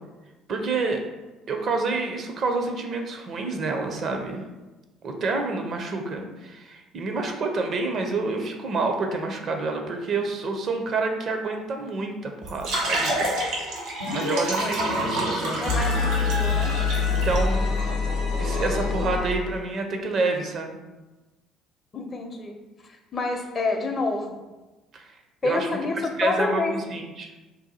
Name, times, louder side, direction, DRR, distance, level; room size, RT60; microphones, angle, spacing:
voice 1, 0.5-1.0 1.5-4.4 5.0-13.3 14.1-15.6 17.1-17.7 18.4-20.8 24.9-25.2 25.4-25.7 26.0-27.3, right 3 dB, 50° right, 4 dB, 0.5 m, -28 dB
sound 1, 12.4-17.4, right 1 dB, 75° right, 1.1 m, -28 dB
sound 2, 14.0-14.4 14.6-19.6, left 4 dB, 80° left, 0.6 m, -26 dB
voice 2, 15.6-16.8 21.9-22.6 22.8-24.4 25.4-26.7, left 3 dB, 40° left, 4 dB, 0.6 m, -28 dB
2.6 x 2.2 x 4.1 m, 1.1 s
hypercardioid pair, 60°, 0 cm